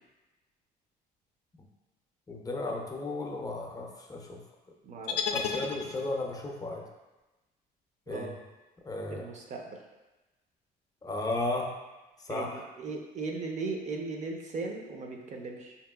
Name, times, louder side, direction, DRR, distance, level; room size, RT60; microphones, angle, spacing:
voice 1, 2.3-4.4 5.3-6.8 8.1-8.3 8.9-9.3 11.0-11.7 12.3-12.6, left 2 dB, 20° left, 1 dB, 0.5 m, -34 dB
voice 2, 4.8-5.6 8.1-8.3 9.1-9.8 12.3-15.8, right 3 dB, 45° right, 2 dB, 0.6 m, -38 dB
sound 1, 5.1-6.4, left 6 dB, 80° left, 0.4 m, -33 dB
4.9 x 2.9 x 2.3 m, 1.1 s
cardioid pair, 110°, 17 cm